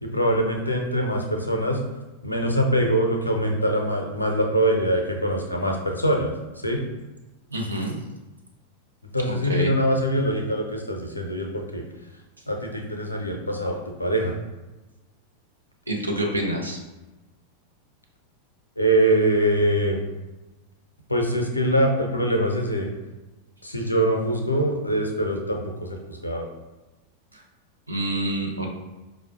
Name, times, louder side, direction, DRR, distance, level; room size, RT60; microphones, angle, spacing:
voice 1, 0.0-1.8 2.2-6.3 6.6-6.8 9.1-11.8 12.5-14.3 18.8-20.0 21.1-22.9 23.6-26.5, right 1 dB, 85° left, 2 dB, 0.5 m, -23 dB
voice 2, 7.5-8.0 9.4-9.7 15.9-16.8 27.3-27.4 27.9-28.7, right 1 dB, 85° right, 0 dB, 0.5 m, -27 dB
4.8 x 2.0 x 2.5 m, 1.1 s
figure-of-eight pair, 90°, 0 cm